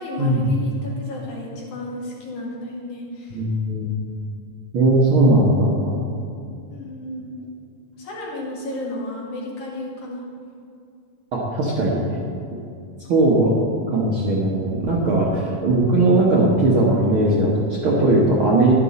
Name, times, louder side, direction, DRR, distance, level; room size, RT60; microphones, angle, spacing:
voice 1, 0.0-3.4 6.7-7.4 8.0-10.2 15.0-15.3, left 1 dB, 70° left, -4 dB, 3.4 m, -33 dB
voice 2, 3.3-4.1 4.7-6.0 11.3-12.2 13.1-13.6 13.9-18.7, right 2 dB, 60° right, -4 dB, 1.4 m, -19 dB
11.0 x 10.5 x 4.2 m, 2.5 s
omnidirectional pair, 3.7 m